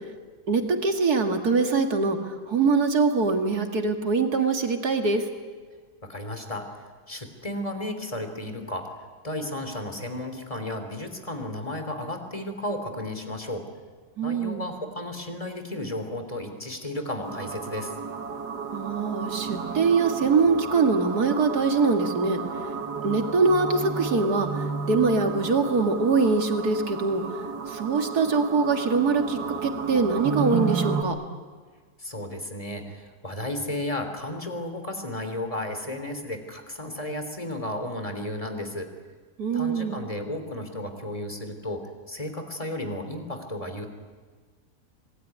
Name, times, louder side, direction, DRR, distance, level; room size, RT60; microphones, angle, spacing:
voice 1, 0.5-5.3 14.2-14.7 18.7-22.4 23.0-27.2 27.7-31.1 39.4-40.1, right 4 dB, 70° right, 4 dB, 2.7 m, -23 dB
voice 2, 6.0-6.7 7.1-8.9 9.2-13.6 14.2-17.9 32.0-38.9 39.5-41.8 42.1-43.9, left 1 dB, 20° left, 7 dB, 3.1 m, -33 dB
sound 1, 17.2-31.0, right 5 dB, 85° right, 2.4 m, -32 dB
26.0 x 20.5 x 9.7 m, 1.5 s
omnidirectional pair, 1.7 m